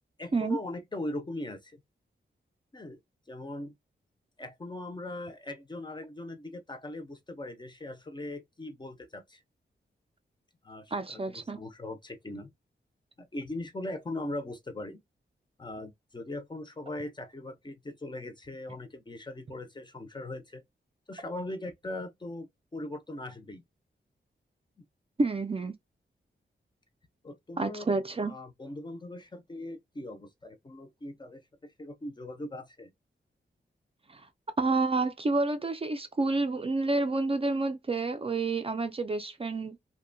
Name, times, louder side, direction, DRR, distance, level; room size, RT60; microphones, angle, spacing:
voice 1, 0.2-1.8 2.7-3.0 3.3-3.7 4.4-9.4 10.6-12.5 13.2-15.0 15.6-20.6 21.1-23.6 27.2-27.9 28.3-32.9, left 1 dB, 25° left, 0.5 m, -40 dB
voice 2, 10.9-11.6 25.2-25.7 27.6-28.3 34.1-34.2 34.6-39.8, right 3 dB, 30° right, 0.4 m, -29 dB
2.6 x 2.2 x 2.5 m
wide cardioid pair, 140°, 19 cm